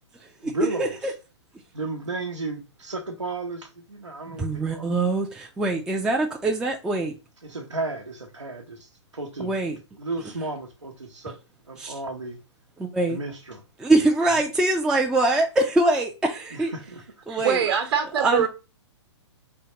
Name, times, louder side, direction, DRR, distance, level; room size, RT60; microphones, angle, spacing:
voice 1, 0.4-1.1 1.7-5.0 7.4-9.6 10.0-11.4 11.7-12.4 13.1-13.6 16.5-17.0 18.4-18.5, right 3 dB, 90° right, 0.9 m, -34 dB
voice 2, 4.3-7.1 9.4-9.8 11.8-11.9 12.8-13.2 13.8-16.7 17.3-17.6 18.2-18.5, right 2 dB, 5° right, 0.3 m, -23 dB
voice 3, 17.3-18.5, right 8 dB, 55° right, 1.0 m, -23 dB
4.4 x 3.3 x 2.9 m
figure-of-eight pair, 120°, 15 cm